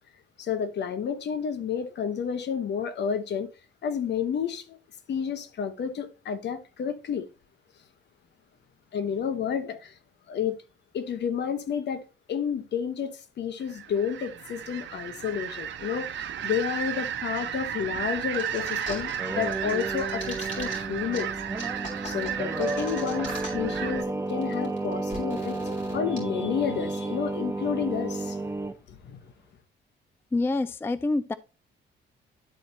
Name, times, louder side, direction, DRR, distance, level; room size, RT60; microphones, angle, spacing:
voice 1, 0.4-3.5 3.8-4.8 5.1-7.3 8.9-10.0 10.3-10.6 10.9-21.4 22.0-25.6 25.9-28.4 28.9-29.3, left 7 dB, 60° left, 1.0 m, -31 dB
sound 1, 13.6-24.0, right 10 dB, 65° right, 0.9 m, -34 dB
sound 2, 18.3-19.2 19.4-20.8 21.1-21.2 21.6-23.8 24.0-24.1 24.3-26.2, left 2 dB, 40° left, 3.7 m, -40 dB
Singing, 19.0-28.7, right 2 dB, 15° right, 0.9 m, -32 dB
voice 2, 30.3-31.3, left 2 dB, 10° left, 0.3 m, -26 dB
11.5 x 4.3 x 2.7 m
cardioid pair, 90°, 20 cm